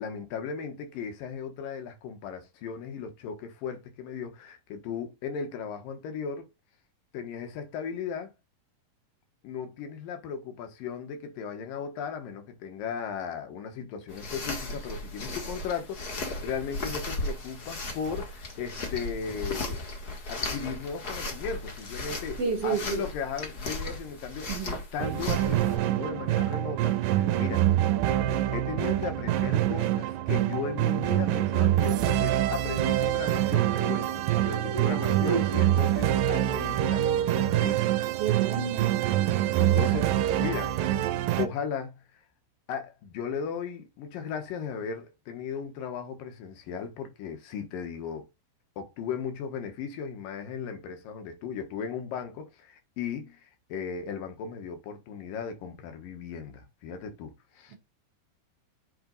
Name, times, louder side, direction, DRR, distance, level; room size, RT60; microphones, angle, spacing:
voice 1, 0.0-6.5 7.1-8.3 9.4-19.8 20.3-27.7 28.5-38.0 39.6-40.7 41.1-42.0 42.7-48.3 48.8-57.8, left 6 dB, 75° left, 3.0 m, -36 dB
sound 1, 14.1-25.8, left 2 dB, 40° left, 1.4 m, -36 dB
voice 2, 22.4-23.1 24.5-24.7 34.7-35.4 38.2-39.1, right 6 dB, 55° right, 1.8 m, -31 dB
sound 2, 25.0-41.5, right 13 dB, 80° right, 2.3 m, -25 dB
7.9 x 4.4 x 4.0 m
omnidirectional pair, 4.1 m